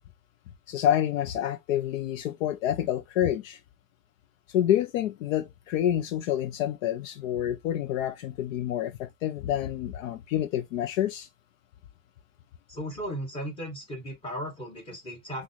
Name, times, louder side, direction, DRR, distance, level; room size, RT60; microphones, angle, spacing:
voice 1, 0.7-3.6 4.5-11.3, left 11 dB, 70° left, 0.7 m, -28 dB
voice 2, 12.7-15.4, equal, 15° left, 2.1 m, -36 dB
6.1 x 2.5 x 3.0 m
supercardioid pair, 165°, 40 cm